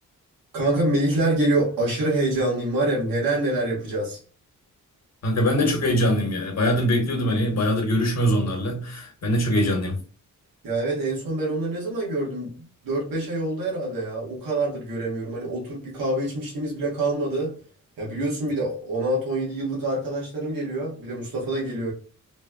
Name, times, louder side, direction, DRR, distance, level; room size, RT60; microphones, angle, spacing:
voice 1, 0.5-4.2 10.6-17.6 18.0-21.9, right 2 dB, 85° right, 1.3 m, -26 dB
voice 2, 5.2-10.0, equal, 50° left, 1.1 m, -22 dB
3.3 x 2.2 x 2.2 m
cardioid pair, 85°, 33 cm